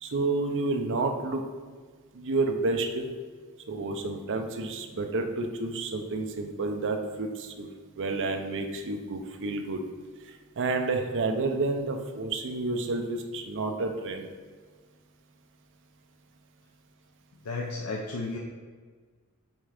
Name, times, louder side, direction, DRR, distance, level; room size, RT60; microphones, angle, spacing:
voice 1, 0.0-1.4 2.1-3.1 3.7-7.7 8.0-9.8 10.6-14.3, right 3 dB, 55° right, 4 dB, 0.6 m, -30 dB
voice 2, 17.4-18.4, left 3 dB, 70° left, 0 dB, 0.6 m, -33 dB
5.2 x 3.7 x 4.9 m, 1.5 s
head